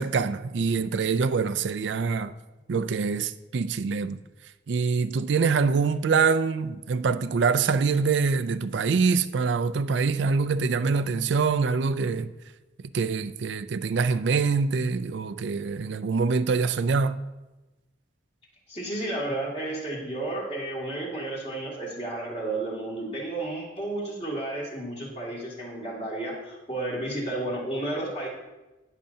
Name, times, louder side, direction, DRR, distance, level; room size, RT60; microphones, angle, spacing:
voice 1, 0.0-2.3 2.7-4.2 4.7-12.3 12.9-17.2, right 5 dB, 70° right, 0.4 m, -25 dB
voice 2, 18.7-28.3, right 2 dB, 30° left, 2.7 m, -32 dB
19.0 x 6.6 x 2.8 m
head